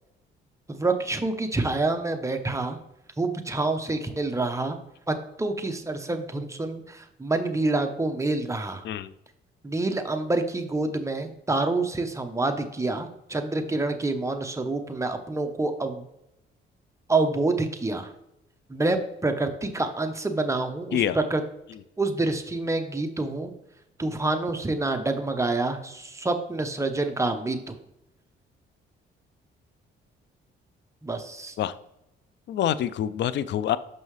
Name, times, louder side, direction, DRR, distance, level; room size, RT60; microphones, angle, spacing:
voice 1, 0.7-2.8 3.2-4.8 5.1-8.8 9.6-16.1 17.1-18.1 18.7-21.4 22.0-23.5 24.0-27.8 31.0-31.6, right 2 dB, 15° right, 6 dB, 0.8 m, -27 dB
voice 2, 32.5-33.8, left 10 dB, 65° left, 16 dB, 0.4 m, -26 dB
6.4 x 5.5 x 3.2 m, 0.85 s
cardioid pair, 90°, 20 cm